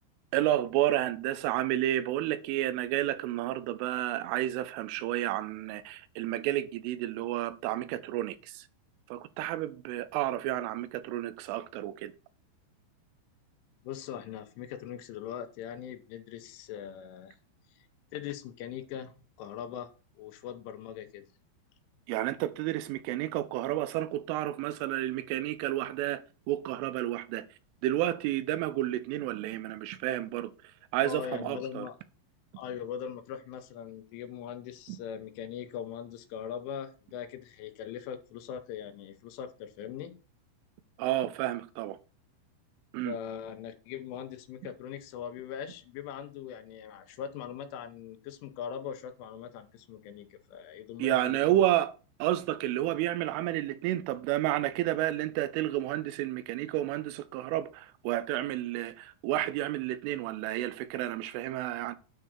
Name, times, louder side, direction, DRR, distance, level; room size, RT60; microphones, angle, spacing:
voice 1, 0.3-8.7 9.1-12.1 22.1-27.5 27.8-30.5 30.9-31.9 34.9-35.0 41.0-42.0 42.9-43.2 51.0-51.9 52.2-62.0, right 14 dB, 90° right, 3.3 m, -31 dB
voice 2, 13.8-17.4 18.1-19.9 20.2-21.2 31.0-32.0 32.6-40.1 43.0-51.6, left 9 dB, 90° left, 3.4 m, -41 dB
9.2 x 3.8 x 6.5 m
omnidirectional pair, 5.6 m